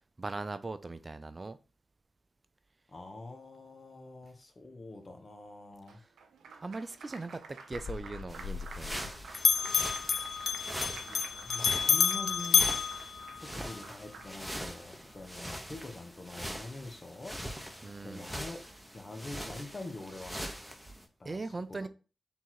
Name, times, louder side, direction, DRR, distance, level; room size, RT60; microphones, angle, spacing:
voice 1, 0.2-1.6 6.0-6.1 6.6-8.9 10.3-10.6 17.8-18.3 21.2-21.9, right 3 dB, 40° right, 0.4 m, -40 dB
voice 2, 2.9-6.0 10.8-12.7 13.4-18.6 18.9-20.5 21.2-21.4 21.8-21.9, left 2 dB, 45° left, 1.1 m, -45 dB
Applause, 5.9-14.6, right 5 dB, 85° right, 0.6 m, -50 dB
Bell, 7.7-9.1 9.3-13.8, left 6 dB, 75° left, 0.3 m, -30 dB
sound 1, 8.3-21.1, equal, 5° right, 1.0 m, -43 dB
3.7 x 3.0 x 4.5 m
supercardioid pair, 40°, 0 cm